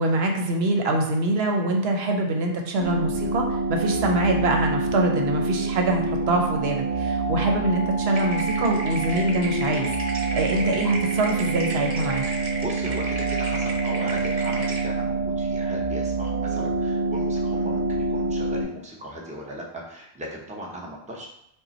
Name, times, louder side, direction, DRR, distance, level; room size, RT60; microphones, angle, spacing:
voice 1, 0.0-9.9 10.3-12.2, right 2 dB, 75° right, 2 dB, 0.9 m, -24 dB
sound 1, 2.8-18.6, right 3 dB, 15° left, 1.2 m, -26 dB
sound 2, 8.1-14.8, right 2 dB, 40° right, 0.7 m, -34 dB
voice 2, 12.3-21.3, equal, 10° right, -3 dB, 0.7 m, -37 dB
5.3 x 2.2 x 4.1 m, 0.76 s
omnidirectional pair, 1.1 m